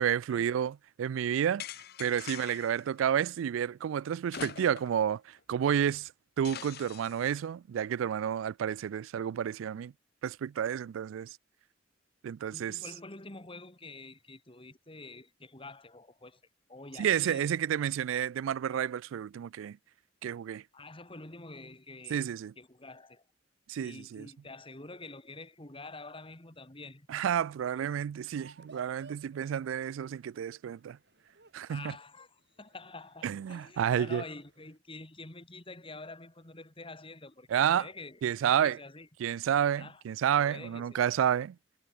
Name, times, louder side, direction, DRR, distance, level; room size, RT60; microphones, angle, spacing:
voice 1, 0.0-1.6 2.0-6.1 6.4-9.9 10.2-11.4 12.2-12.8 17.0-19.8 20.2-20.6 22.1-22.5 23.7-24.3 27.1-31.0 31.5-31.9 33.2-34.2 37.5-37.9 38.2-38.8 39.2-41.6, right 9 dB, 85° right, 0.3 m, -30 dB
sound 1, 1.6-2.8 4.3-5.0 5.4-5.5 6.4-7.3, left 9 dB, 55° left, 0.7 m, -43 dB
voice 2, 12.5-16.4 16.7-17.6 20.7-22.2 22.6-23.2 23.8-27.1 31.7-39.1 39.8-40.0 40.5-41.0, left 2 dB, 30° left, 3.0 m, -47 dB
sound 2, 28.3-34.8, right 3 dB, 60° right, 6.5 m, -58 dB
head